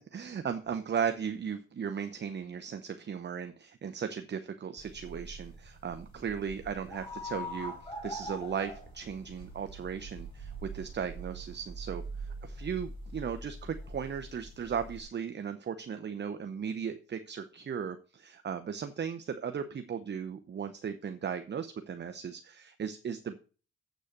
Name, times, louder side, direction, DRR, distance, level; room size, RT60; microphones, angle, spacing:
voice 1, 0.1-23.4, right 7 dB, 35° right, 9 dB, 0.8 m, -36 dB
sound 1, 4.8-15.0, right 1 dB, 15° left, 5.4 m, -43 dB
8.0 x 6.3 x 6.6 m, 0.37 s
cardioid pair, 90°, 30 cm